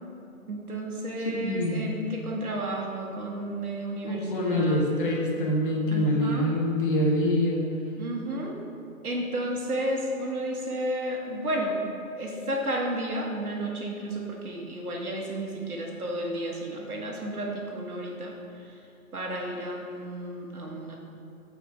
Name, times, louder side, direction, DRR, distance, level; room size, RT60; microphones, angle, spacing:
voice 1, 0.5-4.9 5.9-6.5 8.0-8.5 9.0-11.8 12.2-18.3 19.1-21.0, right 1 dB, 80° right, -1 dB, 1.6 m, -32 dB
voice 2, 1.2-1.8 4.0-7.6, left 1 dB, 35° left, -1 dB, 1.1 m, -25 dB
6.8 x 4.8 x 4.6 m, 2.7 s
hypercardioid pair, 145°, 44 cm